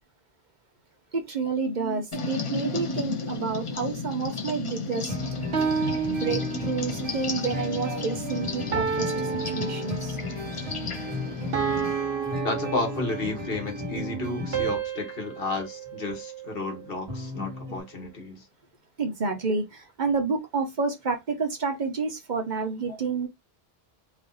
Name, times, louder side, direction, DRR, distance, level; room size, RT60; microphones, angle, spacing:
voice 1, 1.1-5.1 6.1-9.1 9.5-10.2 19.0-23.3, right 4 dB, 50° right, 0.9 m, -29 dB
sound 1, 2.1-11.9, left 4 dB, 40° left, 0.6 m, -34 dB
sound 2, 5.1-14.7 17.1-17.8, left 1 dB, 30° right, 1.7 m, -34 dB
sound 3, 5.5-7.1 8.7-10.4 11.5-13.4 14.5-16.9, right 6 dB, 75° right, 1.1 m, -31 dB
voice 2, 7.8-8.2 12.4-18.4 22.9-23.0, left 2 dB, 65° left, 1.4 m, -33 dB
3.2 x 2.5 x 3.9 m
omnidirectional pair, 1.0 m